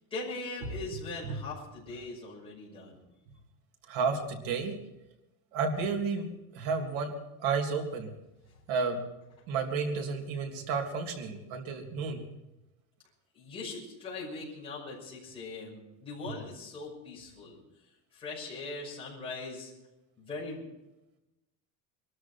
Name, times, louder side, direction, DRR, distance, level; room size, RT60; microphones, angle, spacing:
voice 1, 0.1-3.0 13.3-17.6 18.1-19.7 20.2-20.7, left 3 dB, 15° left, -6 dB, 6.0 m, -40 dB
voice 2, 3.9-4.7 5.5-6.2 6.5-7.1 7.4-8.1 8.7-9.0 9.5-12.2, right 5 dB, 75° right, 3 dB, 3.2 m, -31 dB
23.0 x 13.0 x 4.6 m, 0.94 s
cardioid pair, 170°, 37 cm